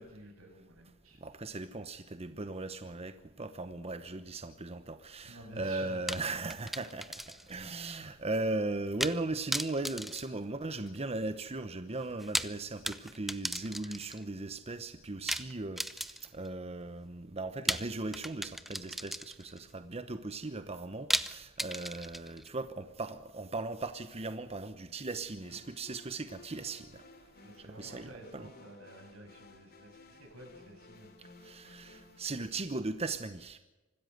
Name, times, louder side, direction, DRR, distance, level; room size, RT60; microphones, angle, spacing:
voice 1, 0.0-1.2 5.2-6.0 27.4-31.1, right 1 dB, 90° right, 2 dB, 7.5 m, -51 dB
voice 2, 1.2-27.0 27.6-28.5 31.4-33.6, right 2 dB, 30° right, 10 dB, 0.9 m, -38 dB
sound 1, 6.1-7.6 7.9-8.0 9.0-9.2 9.5-11.0 12.1-14.2 15.3-16.5 17.7-19.6 21.1-22.5, equal, ahead, 0.7 m, -36 dB
sound 2, 25.4-32.2, left 2 dB, 50° left, 2.8 m, -56 dB
25.5 x 13.5 x 7.9 m, 1.1 s
head